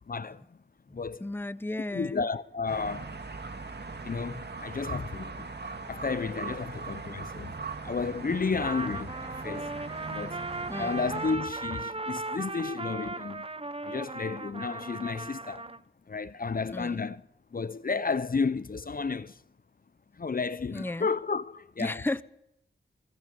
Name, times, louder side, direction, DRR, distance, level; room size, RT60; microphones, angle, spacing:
voice 1, 0.1-0.6 0.9-1.3 1.9-3.1 4.0-5.5 5.9-7.5 7.8-13.5 13.8-15.7 16.1-17.2 17.5-19.4 20.2-22.0, left 4 dB, 45° left, 0.7 m, -32 dB
voice 2, 1.2-2.3 10.7-11.0 16.7-17.0 20.7-21.1 21.8-22.2, left 2 dB, 10° left, 0.7 m, -34 dB
sound 1, 2.7-11.4, right 4 dB, 55° right, 2.1 m, -40 dB
Trumpet, 8.6-15.8, right 2 dB, 30° right, 0.9 m, -37 dB
25.0 x 21.0 x 5.3 m
cardioid pair, 40°, 20 cm